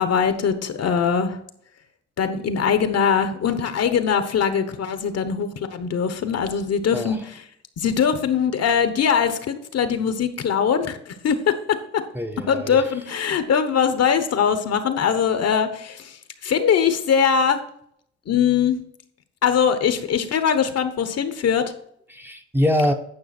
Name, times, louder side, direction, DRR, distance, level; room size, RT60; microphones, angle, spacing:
voice 1, 0.0-1.4 2.2-7.2 7.8-12.0 12.5-17.6 18.3-18.8 19.4-21.7, left 7 dB, 55° left, 10 dB, 1.1 m, -21 dB
voice 2, 6.9-7.2 12.1-12.8 13.3-13.4 22.1-22.9, left 1 dB, 5° right, 5 dB, 0.8 m, -24 dB
9.8 x 5.7 x 4.3 m, 0.68 s
cardioid pair, 90°, 30 cm